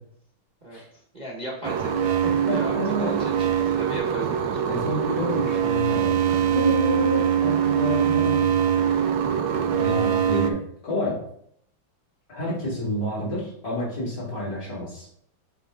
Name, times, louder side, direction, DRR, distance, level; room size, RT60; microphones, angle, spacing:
voice 1, 1.1-2.2 2.5-4.8 5.0-5.2 12.4-12.5, right 1 dB, 25° right, -3 dB, 1.2 m, -36 dB
sound 1, 1.6-10.5, right 8 dB, 70° right, 1.2 m, -23 dB
voice 2, 2.2-3.2 4.7-8.5 9.7-11.2 12.3-15.1, left 1 dB, 45° left, -8 dB, 3.9 m, -29 dB
8.0 x 4.6 x 3.6 m, 0.68 s
omnidirectional pair, 2.1 m